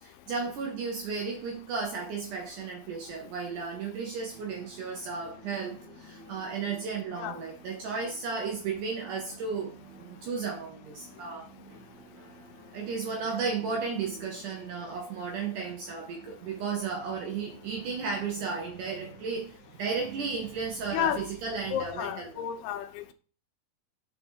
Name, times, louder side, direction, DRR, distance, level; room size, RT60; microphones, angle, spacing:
voice 1, 0.0-11.5 12.7-22.5, right 5 dB, 75° right, 1.9 m, -34 dB
sound 1, 4.3-21.0, right 2 dB, 50° right, 1.3 m, -53 dB
voice 2, 20.9-21.3 21.7-23.1, left 10 dB, 80° left, 2.5 m, -32 dB
5.7 x 4.8 x 4.4 m
omnidirectional pair, 4.6 m